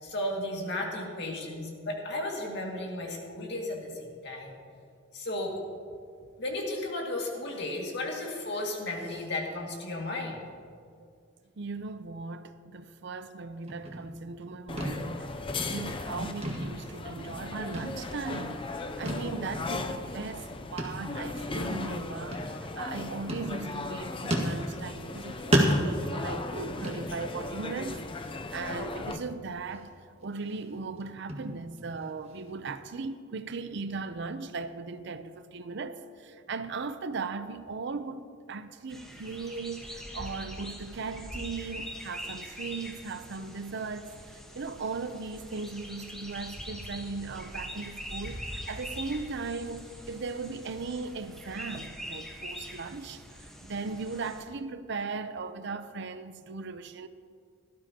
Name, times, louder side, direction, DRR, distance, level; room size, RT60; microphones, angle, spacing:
voice 1, 0.0-4.5 5.1-5.6 6.4-10.4, left 1 dB, 60° left, 2.1 m, -34 dB
voice 2, 11.6-15.3 15.7-18.6 19.0-28.0 28.5-29.9 30.2-44.1 44.5-53.2 53.6-57.1, right 4 dB, 60° right, 0.6 m, -38 dB
sound 1, 13.7-14.5 14.8-15.2 15.5-16.1 16.4-17.4 17.7-18.4 19.1-19.3 19.7-19.8 20.8-21.1 21.4-21.5 22.3-22.9 23.3-23.9 24.3-25.2 25.5-27.5 27.9-28.2 28.5-28.6 29.1-29.8 30.2-32.7, equal, 30° right, 1.7 m, -32 dB
sound 2, 14.7-29.2, left 3 dB, 25° left, 0.5 m, -37 dB
sound 3, 38.9-54.4, equal, 5° left, 1.2 m, -43 dB
17.5 x 13.0 x 2.9 m
head